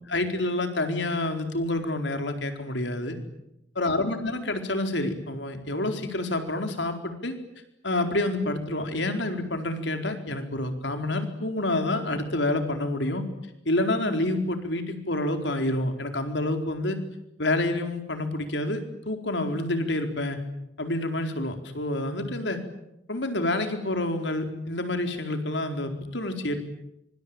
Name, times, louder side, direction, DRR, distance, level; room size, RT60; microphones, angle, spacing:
voice 1, 0.1-3.2 3.8-7.4 7.8-13.2 13.7-17.0 17.4-18.8 19.1-20.4 20.8-22.6 23.1-26.7, left 2 dB, 75° left, 6 dB, 4.4 m, -28 dB
26.0 x 24.5 x 9.0 m, 0.83 s
head